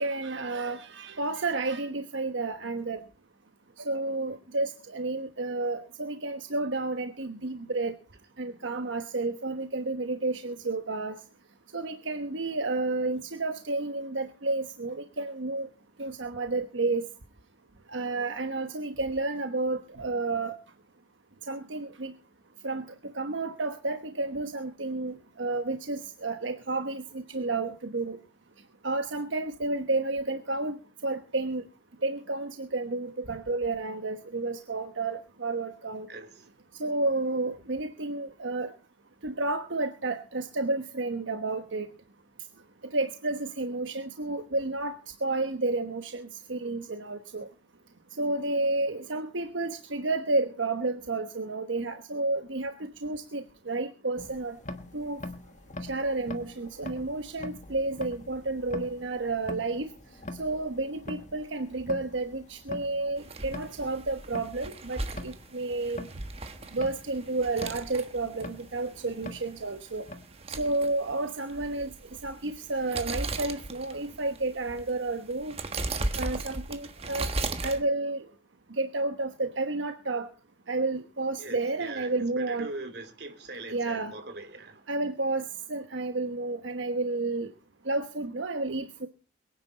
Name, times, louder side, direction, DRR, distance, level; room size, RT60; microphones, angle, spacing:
voice 1, 0.0-3.0 3.8-7.9 8.4-11.2 11.7-15.7 16.0-17.1 17.9-20.6 21.5-22.1 22.6-22.8 23.1-28.2 28.8-31.7 32.0-36.1 36.8-38.7 39.2-41.9 42.9-47.5 48.2-54.6 54.9-55.2 55.8-59.9 60.4-66.1 66.7-70.0 70.6-71.9 72.2-75.6 76.2-77.3 77.6-78.3 78.7-80.3 80.7-82.7 83.7-84.1 84.9-87.5 87.8-89.1, right 2 dB, 85° right, 1.2 m, -31 dB
voice 2, 36.1-36.5 81.4-84.8, right 2 dB, 60° right, 2.8 m, -41 dB
sound 1, 54.2-70.2, left 2 dB, 40° left, 1.3 m, -44 dB
sound 2, 63.2-77.8, right 2 dB, 30° right, 1.4 m, -37 dB
22.0 x 9.9 x 4.1 m
head